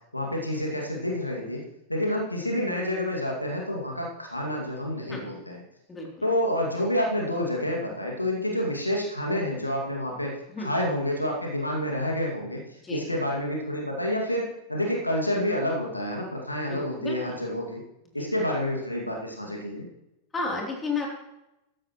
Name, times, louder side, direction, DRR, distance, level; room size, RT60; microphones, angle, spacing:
voice 1, 0.1-1.6 1.9-5.6 6.2-17.8 18.1-19.9, left 1 dB, 85° left, -1 dB, 2.3 m, -28 dB
voice 2, 16.7-17.3 18.2-18.3 20.3-21.1, left 3 dB, 15° left, 0 dB, 3.3 m, -32 dB
14.0 x 13.0 x 3.1 m, 0.90 s
figure-of-eight pair, 90°, 0 cm